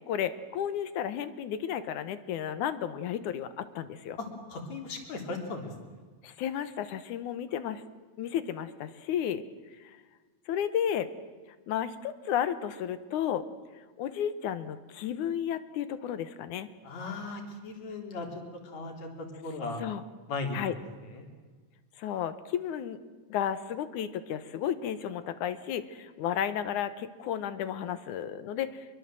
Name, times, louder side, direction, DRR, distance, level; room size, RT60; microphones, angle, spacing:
voice 1, 0.1-4.2 6.2-7.8 8.2-9.4 10.5-11.1 11.7-13.4 14.0-16.7 19.8-20.0 20.5-20.7 22.0-23.0 23.3-28.9, left 9 dB, 85° left, 12 dB, 2.6 m, -33 dB
voice 2, 4.2-5.7 16.8-19.8 20.3-20.8 21.1-21.3, left 3 dB, 65° left, 3 dB, 4.7 m, -37 dB
25.0 x 22.5 x 7.6 m, 1.4 s
omnidirectional pair, 3.4 m